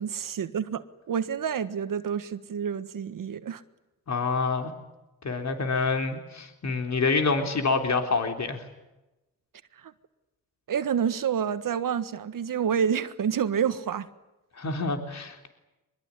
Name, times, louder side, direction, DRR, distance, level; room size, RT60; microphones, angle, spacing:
voice 1, 0.0-3.6 9.8-9.9 10.7-14.1, right 8 dB, 70° right, 1.5 m, -28 dB
voice 2, 4.1-4.7 5.2-8.6 14.6-15.5, left 4 dB, 50° left, 3.7 m, -27 dB
23.5 x 21.5 x 9.8 m
cardioid pair, 60°, 34 cm